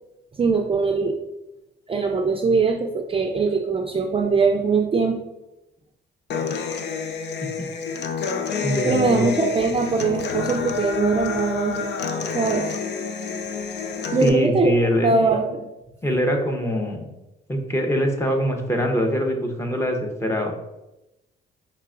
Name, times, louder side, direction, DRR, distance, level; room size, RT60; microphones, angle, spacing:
voice 1, 0.4-1.2 1.9-5.2 8.9-11.9 12.3-12.7 14.1-14.7 15.0-15.6, right 4 dB, 30° right, 2 dB, 0.5 m, -21 dB
Human voice / Acoustic guitar, 6.3-14.3, left 6 dB, 60° left, 0.5 m, -28 dB
voice 2, 8.6-9.3 14.2-15.2 16.0-17.1 17.5-20.5, equal, 15° left, 2 dB, 0.8 m, -23 dB
5.6 x 3.3 x 2.5 m, 0.93 s
cardioid pair, 90°, 20 cm